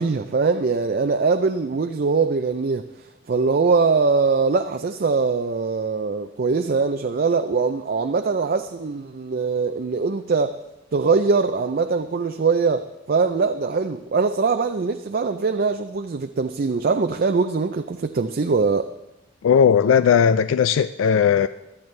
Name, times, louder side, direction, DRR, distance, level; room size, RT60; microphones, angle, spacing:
voice 1, 0.0-2.8 3.3-10.6 10.9-18.9, right 4 dB, 50° right, 0.4 m, -22 dB
voice 2, 19.4-21.5, left 7 dB, 85° left, 0.3 m, -17 dB
18.0 x 12.0 x 3.3 m
head